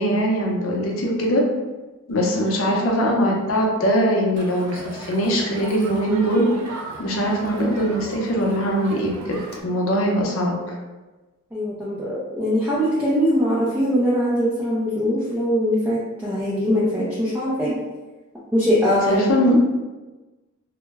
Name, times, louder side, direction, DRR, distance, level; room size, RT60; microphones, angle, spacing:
voice 1, 0.0-1.4 2.1-6.7 7.0-10.7 18.9-19.6, equal, 65° left, -1 dB, 0.6 m, -21 dB
Crowd, 4.4-9.6, right 2 dB, 80° right, 0.4 m, -38 dB
voice 2, 11.5-17.8 18.5-19.3, equal, 5° right, -8 dB, 0.4 m, -21 dB
2.1 x 2.0 x 3.3 m, 1.2 s
head